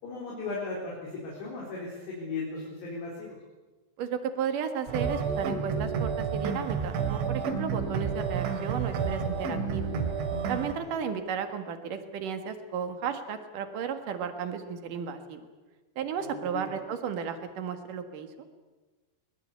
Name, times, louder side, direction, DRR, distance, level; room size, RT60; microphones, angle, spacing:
voice 1, 0.0-3.4 10.8-10.9 16.2-16.8, left 3 dB, 65° left, -4 dB, 6.2 m, -37 dB
voice 2, 4.0-9.9 10.5-15.5 16.0-18.3, right 7 dB, 55° right, 7 dB, 2.8 m, -34 dB
sound 1, 4.9-10.7, right 6 dB, 85° right, 4.7 m, -30 dB
23.0 x 21.0 x 8.4 m, 1.2 s
omnidirectional pair, 5.2 m